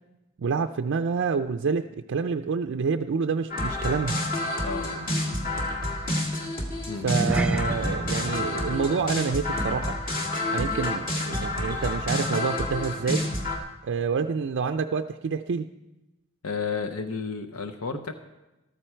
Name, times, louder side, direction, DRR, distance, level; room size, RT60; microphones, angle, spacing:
voice 1, 0.4-4.2 7.0-10.0 10.5-13.2 13.8-15.7 17.9-18.0, right 5 dB, 55° right, 5 dB, 0.4 m, -28 dB
sound 1, 3.5-13.6, left 1 dB, 45° left, 2.2 m, -29 dB
voice 2, 4.6-5.1 6.9-7.1 16.4-18.1, left 5 dB, 80° left, 8 dB, 0.7 m, -32 dB
sound 2, 7.0-11.6 11.9-12.2 12.6-12.7, right 1 dB, 5° right, 0.6 m, -32 dB
14.0 x 13.0 x 4.4 m, 1.0 s
head